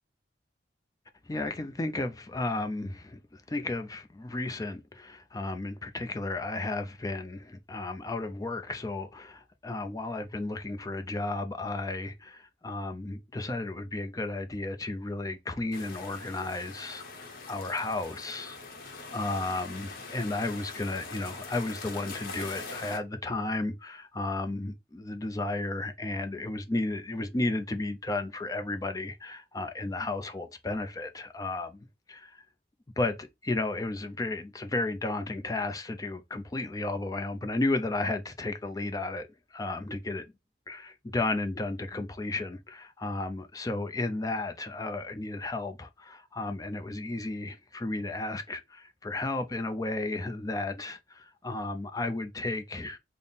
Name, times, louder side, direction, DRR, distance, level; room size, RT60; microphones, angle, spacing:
voice 1, 1.2-32.4 33.0-40.2 40.7-53.0, left 2 dB, 20° left, 0.4 m, -33 dB
sound 1, 15.7-23.0, left 4 dB, 50° left, 0.8 m, -43 dB
3.5 x 2.0 x 3.9 m
head